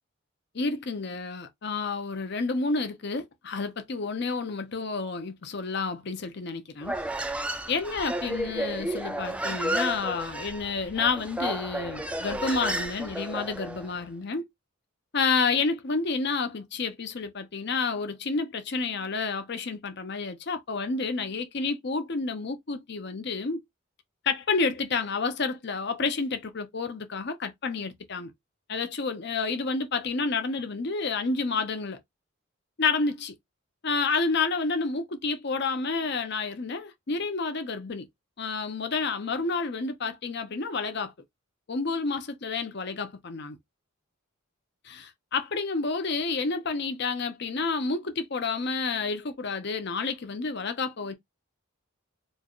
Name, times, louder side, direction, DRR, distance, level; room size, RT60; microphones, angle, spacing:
voice 1, 0.5-7.0 7.7-14.4 15.1-23.6 24.2-28.3 28.7-32.0 32.8-33.3 33.8-38.1 38.4-41.1 41.7-43.6 44.8-51.1, left 4 dB, 55° left, 0.7 m, -30 dB
Human voice, 6.8-13.9, right 1 dB, 5° right, 0.4 m, -32 dB
4.4 x 2.4 x 3.0 m
head